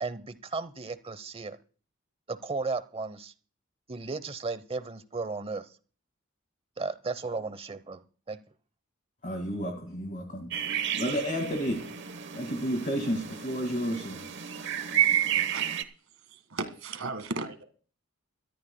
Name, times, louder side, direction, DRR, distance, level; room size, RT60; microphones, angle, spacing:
voice 1, 0.0-1.6 2.3-3.3 3.9-5.7 6.8-8.4, right 3 dB, 25° right, 13 dB, 0.8 m, -35 dB
voice 2, 9.2-10.5 11.0-11.9 12.4-14.3, equal, 40° left, 4 dB, 2.1 m, -31 dB
sound 1, 10.5-15.8, right 10 dB, 55° right, 1.1 m, -31 dB
voice 3, 15.4-15.7 16.3-17.6, right 3 dB, 80° right, 9 dB, 1.8 m, -36 dB
24.0 x 13.5 x 2.3 m, 0.41 s
head